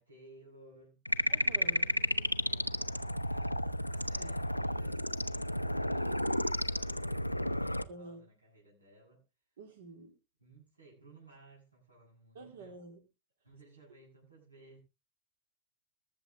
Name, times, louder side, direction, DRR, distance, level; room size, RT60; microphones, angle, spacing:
voice 1, 0.0-6.4 6.7-9.2 10.4-12.7 13.4-14.8, right 2 dB, 80° right, 7.5 m, -59 dB
sound 1, 1.0-7.8, left 1 dB, 90° left, 0.7 m, -32 dB
voice 2, 1.3-1.9 4.2-4.4 7.9-8.3 9.6-10.2 12.3-13.0, right 3 dB, 60° right, 3.8 m, -49 dB
21.5 x 7.4 x 3.8 m
figure-of-eight pair, 90°, 0 cm